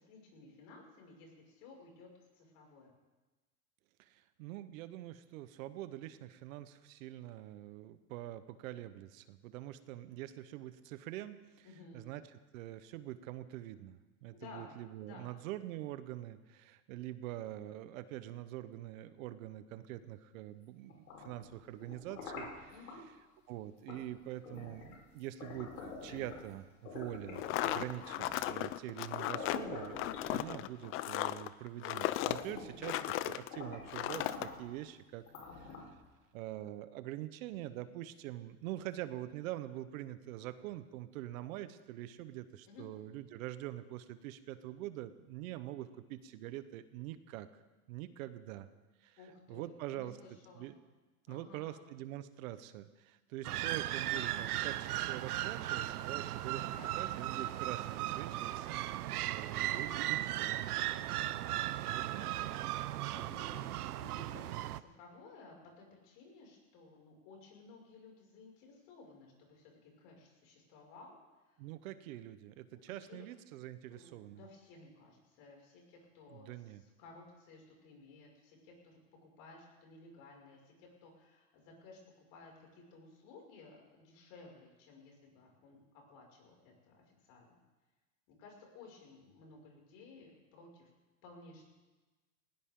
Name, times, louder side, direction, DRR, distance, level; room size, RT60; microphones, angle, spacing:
voice 1, 0.0-2.9 11.6-12.1 14.3-14.7 15.0-15.3 22.7-23.0 32.4-33.0 42.7-42.9 49.2-50.7 51.3-51.8 56.6-57.0 59.5-60.5 60.9-62.2 62.7-71.7 72.7-73.3 73.9-87.6 88.3-90.9 91.2-91.7, left 3 dB, 55° left, 0 dB, 6.3 m, -56 dB
voice 2, 4.0-11.7 11.9-12.2 12.5-22.7 23.5-35.2 35.5-35.8 36.3-47.6 47.9-48.7 49.0-49.2 49.5-50.2 50.5-50.7 51.3-56.6 57.0-60.6 61.8-62.4 71.6-74.4 76.3-76.8, right 14 dB, 65° right, 12 dB, 1.2 m, -45 dB
sound 1, 20.9-23.0 23.9-24.1 24.4-26.5 26.9-28.5 29.0-29.1 29.3-30.8 31.5-31.6 31.9-33.2 33.5-34.7 35.3-36.1, left 4 dB, 90° left, 4.7 m, -47 dB
sound 2, 27.3-33.5 33.9-34.5, left 14 dB, 30° left, 0.5 m, -36 dB
sound 3, 53.4-64.8, right 14 dB, 90° right, 0.7 m, -37 dB
19.5 x 17.5 x 3.8 m, 1.2 s
supercardioid pair, 125°, 44 cm